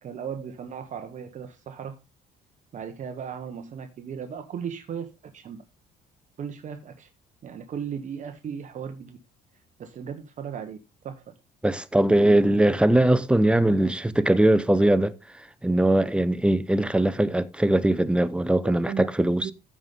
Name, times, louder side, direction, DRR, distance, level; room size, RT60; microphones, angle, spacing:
voice 1, 0.0-2.0 2.7-5.6 6.4-7.1 7.4-9.2 9.8-10.8 11.0-11.3 12.1-12.8 18.6-19.1 19.4-19.5, right 7 dB, 45° right, 1.0 m, -36 dB
voice 2, 11.6-15.2 15.6-19.5, right 1 dB, 5° right, 0.7 m, -21 dB
14.5 x 5.4 x 3.6 m
cardioid pair, 110°, 17 cm